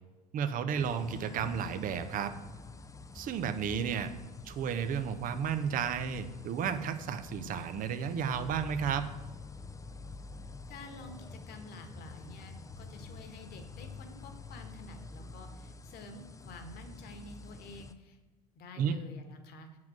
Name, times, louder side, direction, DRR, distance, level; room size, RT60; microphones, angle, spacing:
voice 1, 0.3-2.3 3.1-4.1 4.4-9.1 18.8-18.9, right 7 dB, 40° right, 9 dB, 0.9 m, -32 dB
sound 1, 0.7-17.9, left 3 dB, 15° left, 0.6 m, -47 dB
voice 2, 10.7-18.2 18.6-19.7, left 2 dB, 50° left, 6 dB, 1.7 m, -49 dB
7.7 x 5.9 x 7.6 m, 1.2 s
figure-of-eight pair, 60°, 21 cm